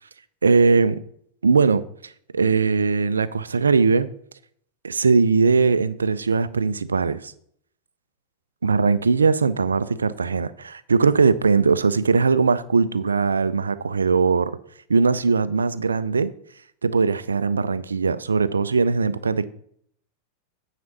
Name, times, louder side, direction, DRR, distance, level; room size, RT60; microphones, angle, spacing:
voice 1, 0.4-1.0 1.4-4.1 4.8-7.3 8.6-14.5 14.9-16.3 16.8-19.5, right 4 dB, 75° right, 0.4 m, -20 dB
9.4 x 4.9 x 5.8 m
figure-of-eight pair, 90°, 0 cm